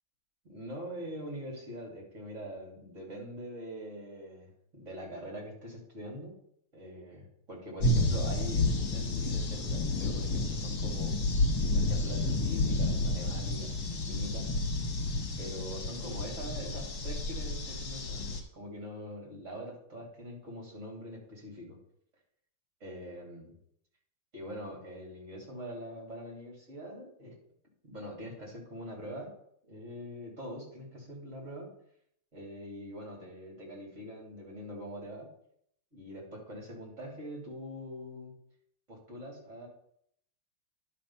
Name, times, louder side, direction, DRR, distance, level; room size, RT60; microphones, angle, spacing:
voice 1, 0.4-6.3 6.7-11.2 11.6-14.5 15.4-21.8 22.8-23.5 24.3-27.3 27.8-29.3 29.6-31.7 32.3-35.3 35.9-38.3 38.9-39.7, equal, 35° right, -3 dB, 3.2 m, -43 dB
sound 1, 7.8-18.4, left 2 dB, 55° left, 1.9 m, -30 dB
11.0 x 4.2 x 5.7 m, 0.70 s
omnidirectional pair, 2.2 m